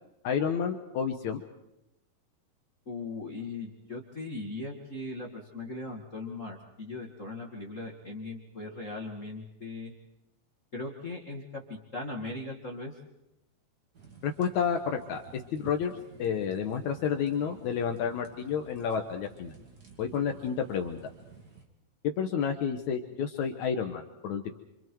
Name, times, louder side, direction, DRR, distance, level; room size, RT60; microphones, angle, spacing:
voice 1, 0.2-1.4 14.2-15.9 16.2-19.5 20.0-21.0 22.0-24.5, left 7 dB, 85° left, 4 dB, 1.6 m, -30 dB
voice 2, 2.8-9.9 10.7-11.4 11.7-12.9, left 2 dB, 40° left, 1 dB, 1.0 m, -39 dB
sound 1, 13.9-21.7, right 5 dB, 30° right, 2.0 m, -52 dB
28.5 x 26.0 x 4.6 m, 0.87 s
omnidirectional pair, 5.0 m